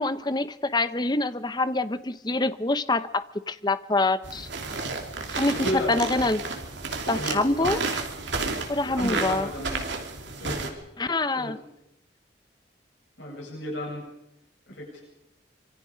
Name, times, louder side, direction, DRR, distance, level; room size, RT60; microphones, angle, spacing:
voice 1, 0.0-4.5 5.3-6.4 7.1-7.8 8.7-9.5 11.0-11.6, left 2 dB, 25° left, 13 dB, 0.7 m, -26 dB
sound 1, 4.2-10.7, right 3 dB, 75° right, 3.1 m, -31 dB
voice 2, 5.2-6.0 7.1-7.7 8.8-9.9 10.4-10.8 11.3-11.5 13.2-14.0 14.7-15.0, left 1 dB, 75° left, -2 dB, 7.9 m, -34 dB
25.5 x 24.5 x 5.1 m, 0.86 s
head